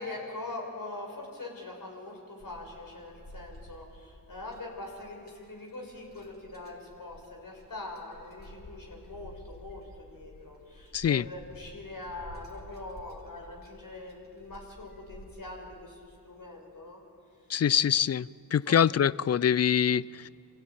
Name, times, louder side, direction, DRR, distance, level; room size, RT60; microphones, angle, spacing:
voice 1, 0.0-17.0 18.7-18.8, left 2 dB, 55° left, 0 dB, 5.9 m, -43 dB
sound 1, 2.4-15.2, left 1 dB, 25° left, 4.3 m, -51 dB
voice 2, 10.9-11.2 17.5-20.3, left 8 dB, 40° left, 22 dB, 0.5 m, -25 dB
24.5 x 16.0 x 9.1 m, 2.4 s
cardioid pair, 45°, 40 cm